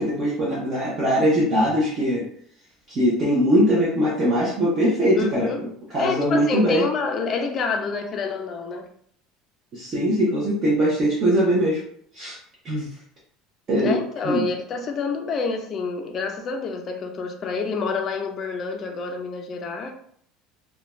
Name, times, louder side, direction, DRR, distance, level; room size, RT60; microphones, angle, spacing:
voice 1, 0.0-2.2 2.9-5.5 5.9-6.8 9.7-11.8 12.1-12.4 12.6-12.9 13.7-14.0 14.2-14.4, equal, 30° right, -6 dB, 0.7 m, -21 dB
voice 2, 5.2-5.6 6.0-8.9 13.8-19.9, left 4 dB, 30° left, 3 dB, 0.4 m, -28 dB
2.5 x 2.2 x 3.0 m, 0.65 s
cardioid pair, 160°, 0 cm